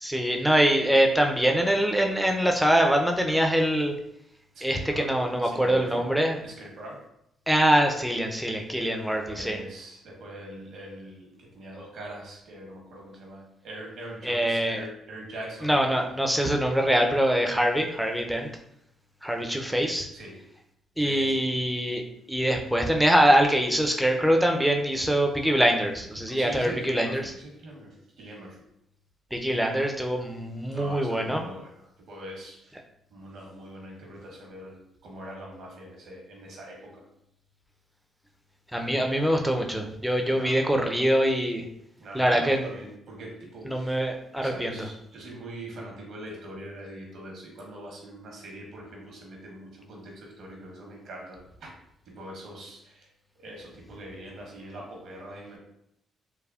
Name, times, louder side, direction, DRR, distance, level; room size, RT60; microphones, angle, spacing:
voice 1, 0.0-3.9 4.6-6.4 7.5-9.6 14.2-14.8 15.6-18.5 19.2-20.1 21.0-22.0 22.3-27.3 29.3-31.4 38.7-41.7 42.1-42.7 43.6-44.8, right 1 dB, ahead, 2 dB, 0.4 m, -24 dB
voice 2, 4.5-6.0 6.4-7.0 9.1-15.7 20.1-20.4 21.0-21.4 26.3-28.6 30.7-32.8 33.1-34.8 35.0-37.1 38.8-39.2 40.3-40.8 42.0-44.0 44.4-51.7 52.1-53.1 53.4-55.6, right 1 dB, 70° right, -1 dB, 0.9 m, -43 dB
3.4 x 2.0 x 2.3 m, 0.78 s
cardioid pair, 90°, 0 cm